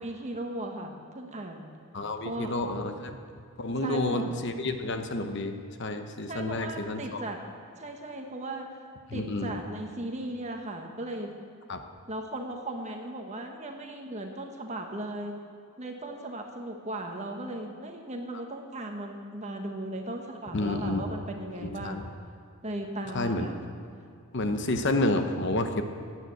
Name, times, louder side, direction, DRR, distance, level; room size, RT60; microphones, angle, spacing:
voice 1, 0.0-1.7 2.2-2.5 3.8-4.3 6.3-7.4 7.8-8.8 9.1-11.3 12.1-15.4 15.8-22.1 22.6-23.7, right 1 dB, 30° right, 3 dB, 1.4 m, -37 dB
voice 2, 1.9-3.2 3.6-5.5 5.8-7.2 9.1-9.5 11.7-11.8 20.5-21.1 21.6-22.0 23.1-23.5 24.3-25.8, left 2 dB, 50° left, 7 dB, 0.9 m, -29 dB
14.5 x 9.5 x 7.8 m, 2.5 s
head